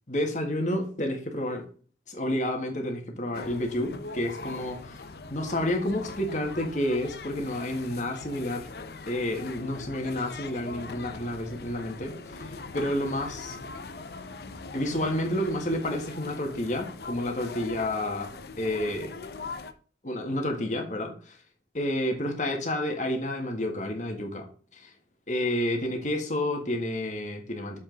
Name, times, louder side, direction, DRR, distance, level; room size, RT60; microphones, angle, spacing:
voice 1, 0.1-1.6 2.1-5.0 5.3-8.7 9.1-13.6 14.7-18.3 18.6-19.1 20.0-21.4 21.7-24.5 24.7-24.9 25.3-27.8, left 1 dB, 45° left, 3 dB, 1.7 m, -30 dB
sound 1, 3.3-19.7, left 3 dB, 60° left, 0.6 m, -41 dB
7.1 x 5.3 x 3.9 m, 0.41 s
head